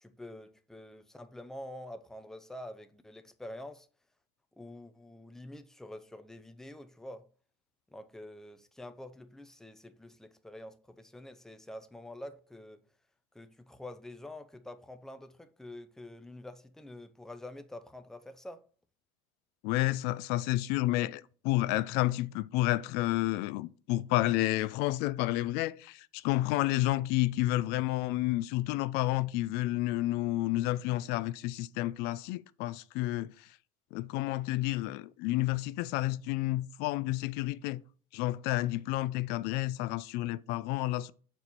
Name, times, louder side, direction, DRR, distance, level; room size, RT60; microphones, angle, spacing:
voice 1, 0.0-3.9 4.6-7.3 7.9-12.8 13.3-18.6, left 1 dB, 5° left, 0.6 m, -47 dB
voice 2, 19.6-33.5 33.9-37.8 38.1-41.1, left 17 dB, 70° left, 0.4 m, -30 dB
6.9 x 4.5 x 4.1 m
cardioid pair, 130°, 17 cm